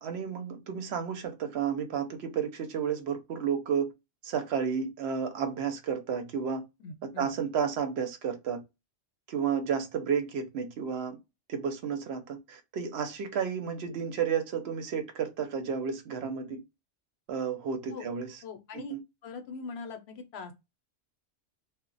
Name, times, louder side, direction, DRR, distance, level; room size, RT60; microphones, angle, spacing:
voice 1, 0.0-3.9 4.2-6.6 7.2-8.6 9.3-11.2 11.5-16.6 17.3-18.3 18.7-19.0, right 7 dB, 65° right, 0.8 m, -32 dB
voice 2, 6.8-7.3 17.9-18.1 18.4-19.0 19.2-20.5, left 4 dB, 65° left, 0.8 m, -41 dB
2.1 x 2.0 x 3.7 m
omnidirectional pair, 1.2 m